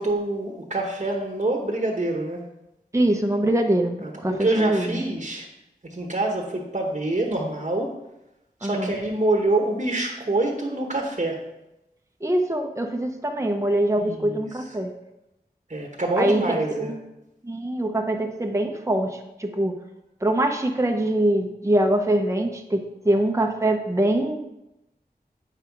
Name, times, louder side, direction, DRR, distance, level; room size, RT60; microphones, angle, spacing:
voice 1, 0.0-2.4 4.0-5.5 5.9-7.9 8.6-11.4 14.0-14.5 15.7-16.9, right 2 dB, 45° right, 0 dB, 1.2 m, -26 dB
voice 2, 2.9-5.0 8.6-8.9 12.2-14.9 16.2-16.9 17.4-19.8 20.2-24.4, right 1 dB, 20° right, 3 dB, 0.8 m, -23 dB
8.2 x 5.5 x 4.7 m, 0.92 s
wide cardioid pair, 55°, 16 cm